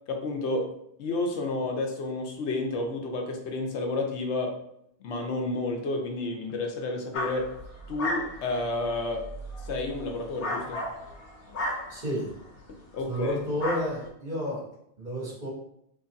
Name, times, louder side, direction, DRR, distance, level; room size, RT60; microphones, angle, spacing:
voice 1, 0.1-0.7 1.0-4.5 5.0-7.6 7.9-9.3 9.6-10.8 12.9-13.4, left 2 dB, 85° left, 2 dB, 1.0 m, -30 dB
sound 1, 7.1-12.6 13.1-13.3 13.6-14.1, left 1 dB, 65° left, 1.2 m, -35 dB
voice 2, 11.9-12.3 13.1-14.6 15.0-15.5, equal, 45° right, -7 dB, 1.6 m, -31 dB
3.1 x 2.4 x 3.9 m, 0.73 s
omnidirectional pair, 1.1 m